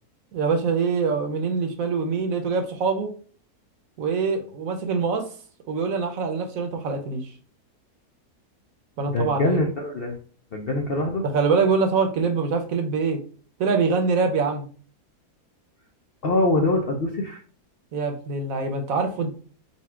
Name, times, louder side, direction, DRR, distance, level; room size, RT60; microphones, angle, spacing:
voice 1, 0.3-3.1 4.0-5.3 5.7-7.3 9.0-9.6 11.2-13.2 13.6-14.7 17.9-19.3, right 4 dB, 65° right, 5 dB, 1.1 m, -24 dB
voice 2, 9.0-10.2 10.5-11.2 16.2-17.4, left 2 dB, 65° left, 1 dB, 0.6 m, -24 dB
4.2 x 2.3 x 4.4 m, 0.41 s
omnidirectional pair, 1.7 m